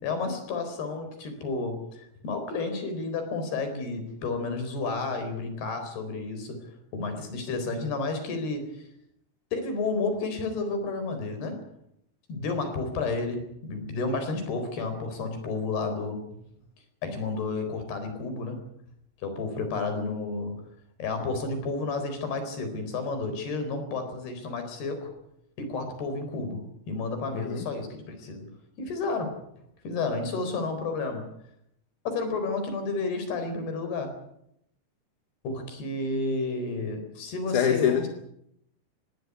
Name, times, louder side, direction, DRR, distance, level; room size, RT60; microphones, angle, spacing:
voice 1, 0.0-8.8 9.5-11.7 12.3-16.4 17.0-18.6 19.2-20.6 21.0-25.1 25.6-28.5 28.8-29.4 29.8-31.3 32.1-34.2 35.4-38.1, left 3 dB, 80° left, 7 dB, 6.2 m, -31 dB
voice 2, 27.3-27.6 37.5-38.1, left 8 dB, 60° left, 6 dB, 2.7 m, -24 dB
20.0 x 16.5 x 9.8 m, 0.75 s
omnidirectional pair, 4.5 m